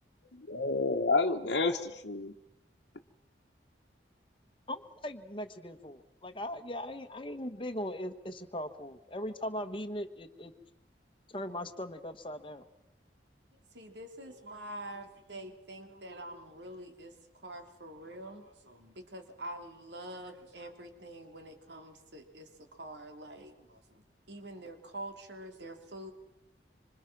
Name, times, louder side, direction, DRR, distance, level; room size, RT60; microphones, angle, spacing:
voice 1, 0.3-2.3, left 3 dB, 75° left, 0 dB, 1.2 m, -29 dB
voice 2, 4.7-10.5 11.3-12.6, left 1 dB, 30° left, 9 dB, 1.3 m, -39 dB
voice 3, 13.7-26.1, right 1 dB, 75° right, 5 dB, 3.2 m, -46 dB
26.0 x 26.0 x 6.1 m, 0.85 s
head